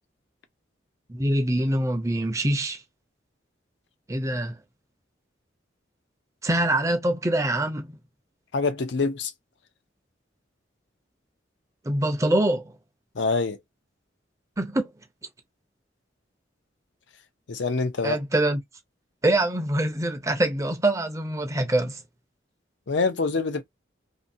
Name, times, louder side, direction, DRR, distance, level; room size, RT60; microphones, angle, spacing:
voice 1, 1.1-2.8 4.1-4.5 6.4-8.0 11.8-12.7 14.6-14.9 18.0-18.6 19.2-22.0, right 1 dB, 15° right, 0.5 m, -24 dB
voice 2, 8.5-9.3 13.2-13.6 17.5-18.2 22.9-23.6, left 4 dB, 75° left, 0.6 m, -25 dB
2.6 x 2.6 x 2.6 m
head